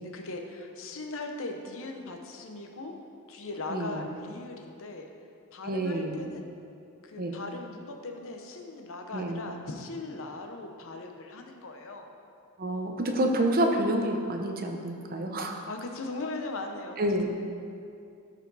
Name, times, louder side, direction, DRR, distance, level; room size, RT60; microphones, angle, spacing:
voice 1, 0.0-2.9 3.3-5.1 5.5-6.5 7.0-12.1 15.7-17.3, left 2 dB, 65° left, 3 dB, 0.9 m, -39 dB
voice 2, 3.7-4.1 5.6-6.2 7.2-7.4 9.1-9.4 12.6-15.6 17.0-17.3, right 1 dB, 40° right, 3 dB, 0.8 m, -28 dB
12.5 x 5.0 x 4.1 m, 2.5 s
head